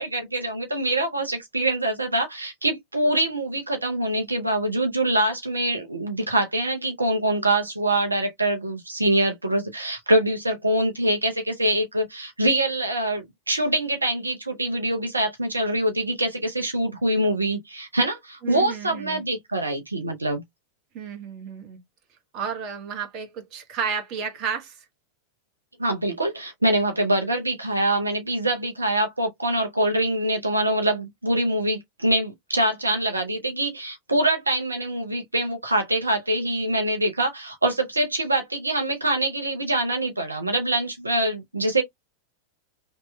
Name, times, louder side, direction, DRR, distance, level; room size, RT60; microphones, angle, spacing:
voice 1, 0.0-20.4 25.8-41.8, right 1 dB, 80° right, 0.6 m, -24 dB
voice 2, 18.4-19.2 20.9-21.8 22.3-24.8, right 7 dB, 40° right, 1.0 m, -32 dB
2.9 x 2.1 x 3.1 m
figure-of-eight pair, 90°, 0 cm